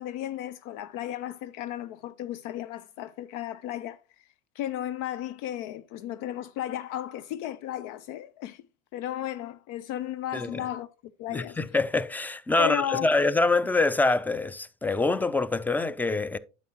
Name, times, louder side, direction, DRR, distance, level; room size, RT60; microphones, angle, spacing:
voice 1, 0.0-4.3 4.5-8.6 8.9-10.9 11.2-11.6 12.6-13.1, left 12 dB, 65° left, 0.6 m, -34 dB
voice 2, 10.3-10.6 11.3-16.4, left 3 dB, 5° left, 0.5 m, -25 dB
9.1 x 7.1 x 2.8 m
hypercardioid pair, 75°, 35 cm